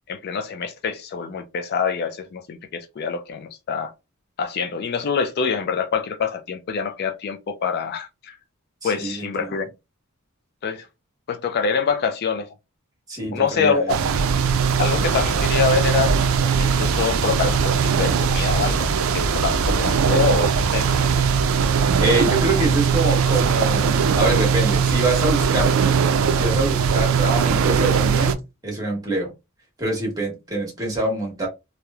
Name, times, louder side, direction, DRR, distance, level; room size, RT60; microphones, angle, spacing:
voice 1, 0.1-3.9 4.4-8.4 8.8-9.7 10.6-10.8 11.3-12.5 13.3-14.0 14.8-18.9 19.1-21.2 21.7-21.8, left 5 dB, 50° left, 0.3 m, -25 dB
voice 2, 8.8-9.7 13.1-13.9 19.3-19.4 22.0-25.8 26.3-28.4 28.6-29.3 29.8-31.5, right 2 dB, 20° right, 1.2 m, -25 dB
sound 1, 13.9-28.3, right 6 dB, 70° right, 0.3 m, -20 dB
3.0 x 2.0 x 2.3 m
head